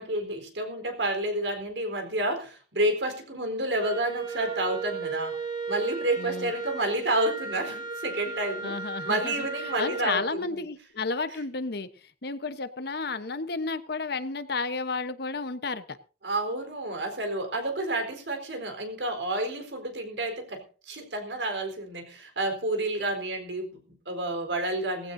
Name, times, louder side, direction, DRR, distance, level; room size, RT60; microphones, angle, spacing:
voice 1, 0.0-5.4 5.7-8.8 9.0-10.6 16.2-25.1, right 1 dB, 80° right, 5 dB, 4.2 m, -30 dB
Wind instrument woodwind instrument, 3.8-10.3, right 4 dB, 25° right, 3.1 m, -36 dB
voice 2, 6.2-6.5 8.6-11.9 12.2-16.0, left 3 dB, 60° left, 11 dB, 1.1 m, -32 dB
19.0 x 15.5 x 2.7 m, 0.36 s
head